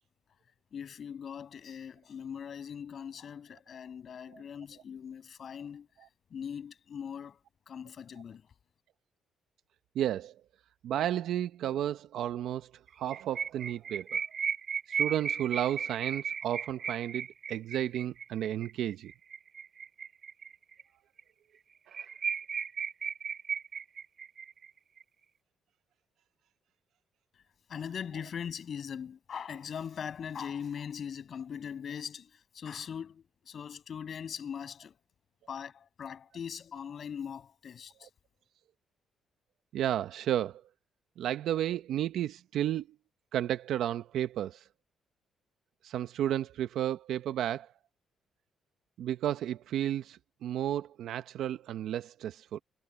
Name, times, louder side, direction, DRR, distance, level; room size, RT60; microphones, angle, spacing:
voice 1, 0.7-5.9 6.3-8.5 27.7-35.0 35.5-38.1, left 7 dB, 55° left, 7.1 m, -41 dB
voice 2, 9.9-10.4 10.8-12.7 13.0-14.2 14.9-19.1 21.9-22.1 38.0-38.1 39.7-40.6 41.2-42.9 43.3-44.7 45.8-47.7 49.0-52.6, right 11 dB, 75° right, 0.8 m, -32 dB
sound 1, 12.9-20.8 21.2-21.3 21.6-21.7 21.9-25.0, right 6 dB, 50° right, 2.9 m, -36 dB
cardioid pair, 90°, 0 cm